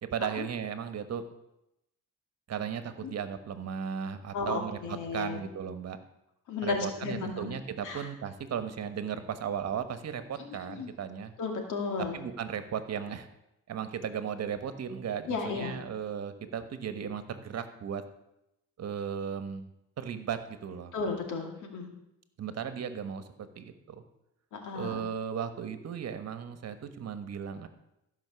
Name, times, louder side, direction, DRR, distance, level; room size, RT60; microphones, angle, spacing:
voice 1, 0.0-1.2 2.5-4.8 5.1-6.0 6.6-11.3 12.1-13.3 13.7-18.0 18.8-19.7 20.0-20.9 22.4-24.0 24.7-27.7, right 7 dB, 55° right, 9 dB, 1.3 m, -36 dB
voice 2, 4.3-5.4 6.5-7.5 7.8-8.1 10.4-10.9 11.4-12.2 15.3-15.7 20.9-21.9 24.5-25.0, left 4 dB, 85° left, 3 dB, 2.4 m, -34 dB
14.5 x 5.7 x 6.9 m, 0.86 s
cardioid pair, 90°, 30 cm